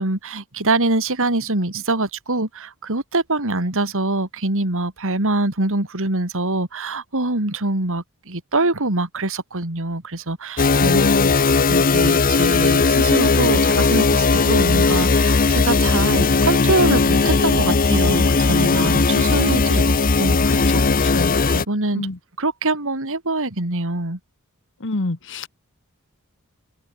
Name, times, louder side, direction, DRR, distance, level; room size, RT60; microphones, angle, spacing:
voice 1, 0.0-11.0 11.7-19.9 20.2-20.6 21.0-21.1 21.5-22.1 22.4-24.2, right 2 dB, 65° right, 3.4 m, -24 dB
sound 1, 10.6-21.7, left 4 dB, 40° left, 0.8 m, -17 dB
voice 2, 10.8-11.3 20.5-21.4 21.9-22.2 24.8-25.5, left 2 dB, 60° left, 1.3 m, -27 dB
head